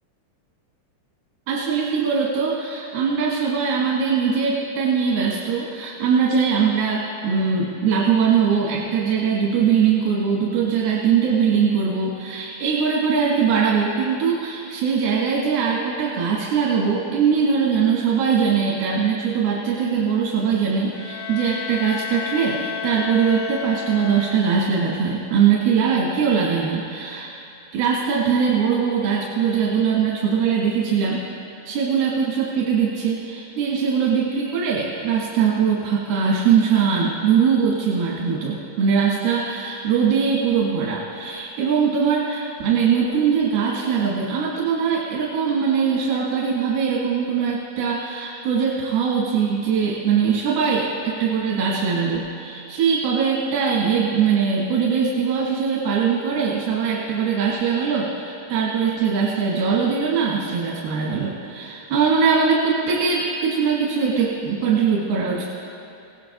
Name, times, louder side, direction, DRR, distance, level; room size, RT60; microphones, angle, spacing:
voice 1, 1.5-27.3 27.7-31.2 31.7-65.5, right 6 dB, 90° right, -6 dB, 3.5 m, -21 dB
Bowed string instrument, 20.9-24.9, left 9 dB, 75° left, 2.5 m, -32 dB
22.0 x 16.5 x 2.6 m, 2.7 s
omnidirectional pair, 4.3 m